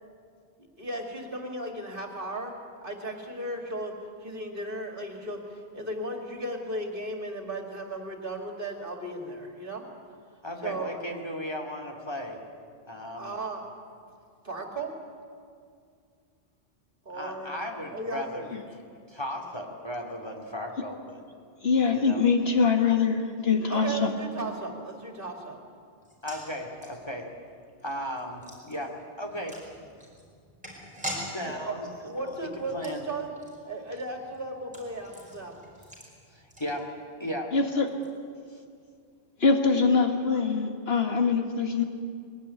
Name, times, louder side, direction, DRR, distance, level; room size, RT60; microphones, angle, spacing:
voice 1, 0.8-2.5 2.8-9.8 10.6-10.9 13.2-13.6 14.4-15.0 17.0-17.5 17.9-18.5 23.7-25.6 31.4-31.8 32.0-33.3 33.6-35.7, right 2 dB, 50° right, 2 dB, 2.7 m, -35 dB
voice 2, 10.4-12.4 12.9-13.3 17.1-18.6 19.1-21.2 21.8-22.2 26.2-27.3 27.8-29.6 31.1-31.9 32.2-33.0 36.3-36.9 37.2-37.5 38.5-38.6, equal, 25° left, 2 dB, 2.5 m, -36 dB
voice 3, 21.6-24.1 37.5-37.9 39.4-41.8, left 5 dB, 65° left, 4 dB, 2.0 m, -23 dB
sound 1, 26.0-37.2 37.5-37.6 37.9-38.1, equal, 5° right, 5.2 m, -44 dB
21.5 x 17.5 x 9.8 m, 2.2 s
omnidirectional pair, 1.1 m